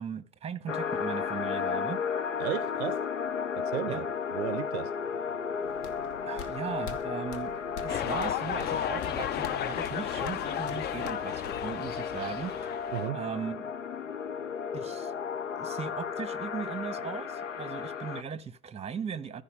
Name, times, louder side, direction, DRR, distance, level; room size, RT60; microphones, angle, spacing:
voice 1, 0.0-2.0 3.9-4.0 6.2-12.8 13.1-13.6 14.7-15.1 15.6-19.4, right 7 dB, 15° right, 0.9 m, -38 dB
sound 1, 0.7-18.2, left 6 dB, 90° left, 0.5 m, -34 dB
voice 2, 2.4-3.0 3.6-4.1 4.3-4.9 12.9-13.2, right 17 dB, 60° right, 0.5 m, -34 dB
sound 2, 5.6-11.9, left 6 dB, 65° left, 1.2 m, -47 dB
sound 3, 7.9-13.1, left 10 dB, 30° left, 0.4 m, -34 dB
14.5 x 5.5 x 5.3 m
figure-of-eight pair, 70°, 37 cm